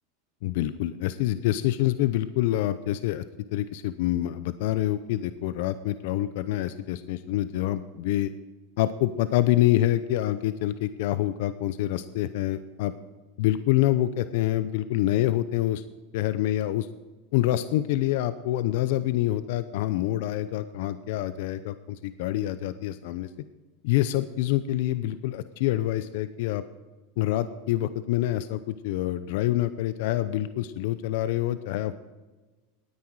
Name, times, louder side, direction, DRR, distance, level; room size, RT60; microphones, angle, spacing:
voice 1, 0.4-3.2 3.5-8.3 8.8-12.9 13.4-15.8 16.1-16.9 17.3-23.3 23.8-26.6 27.2-32.0, left 14 dB, 70° left, 13 dB, 0.6 m, -26 dB
18.0 x 9.7 x 4.7 m, 1.2 s
supercardioid pair, 125°, 0 cm